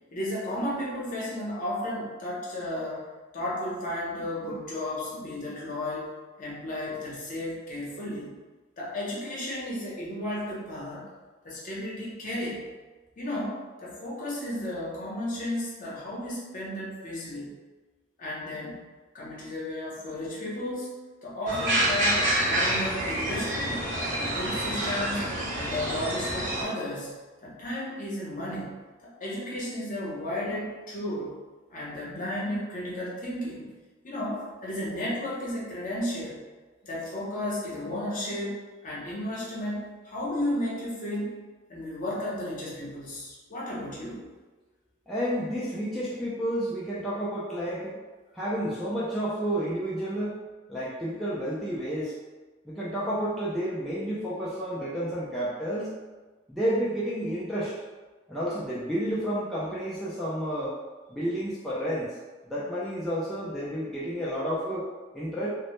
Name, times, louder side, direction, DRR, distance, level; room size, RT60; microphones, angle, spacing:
voice 1, 0.1-3.1 3.3-6.1 6.4-8.4 8.8-11.1 11.4-12.6 13.2-17.5 18.2-18.8 19.1-20.9 21.2-31.4 31.7-33.7 34.0-36.4 36.8-41.4 41.7-44.2, left 1 dB, 45° left, -6 dB, 0.7 m, -33 dB
sound 1, 21.5-26.6, right 1 dB, 45° right, 0.7 m, -27 dB
voice 2, 45.1-48.0 48.3-50.4 50.7-52.1 52.7-55.9 56.5-57.7 58.3-60.8 61.1-62.2 62.5-64.9 65.1-65.5, equal, ahead, -9 dB, 0.3 m, -30 dB
2.0 x 2.0 x 2.9 m, 1.3 s
head